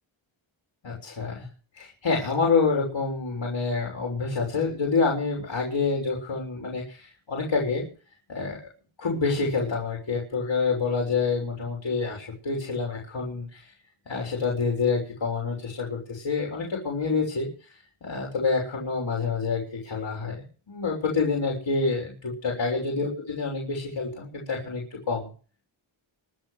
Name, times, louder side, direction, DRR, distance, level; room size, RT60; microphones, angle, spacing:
voice 1, 0.8-1.5 1.8-7.8 8.3-8.6 9.0-13.7 14.1-17.5 18.0-20.4 20.7-25.3, left 4 dB, 65° left, -1 dB, 6.4 m, -27 dB
25.0 x 8.8 x 6.6 m, 0.39 s
wide cardioid pair, 140°, 49 cm